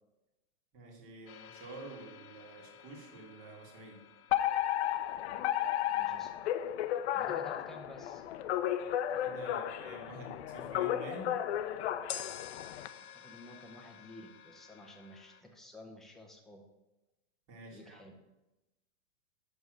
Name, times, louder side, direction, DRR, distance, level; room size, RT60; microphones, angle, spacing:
voice 1, 0.7-4.1 9.1-11.4 17.5-18.0, right 2 dB, 35° right, 1 dB, 1.9 m, -48 dB
sound 1, 1.3-9.2 12.1-15.4, left 9 dB, 85° left, 0.8 m, -51 dB
Alarm, 4.3-12.9, left 11 dB, 55° left, 0.5 m, -33 dB
voice 2, 5.9-6.4 7.1-8.2 13.0-16.6 17.7-18.1, left 1 dB, ahead, 0 dB, 0.6 m, -52 dB
6.4 x 5.3 x 6.2 m, 0.99 s
hypercardioid pair, 145°, 42 cm